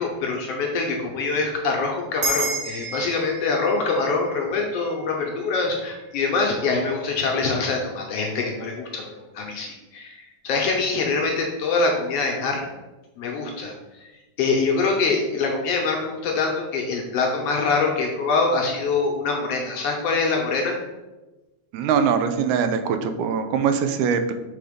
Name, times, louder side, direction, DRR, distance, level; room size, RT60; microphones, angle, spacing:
voice 1, 0.0-9.0 9.3-12.6 13.2-14.1 14.4-20.7, left 4 dB, 70° left, 0 dB, 1.6 m, -24 dB
sound 1, 2.2-6.9, right 2 dB, 55° right, 2.0 m, -33 dB
voice 2, 21.7-24.3, right 6 dB, 85° right, 8 dB, 2.0 m, -22 dB
5.8 x 3.8 x 5.0 m, 1.1 s
omnidirectional pair, 3.3 m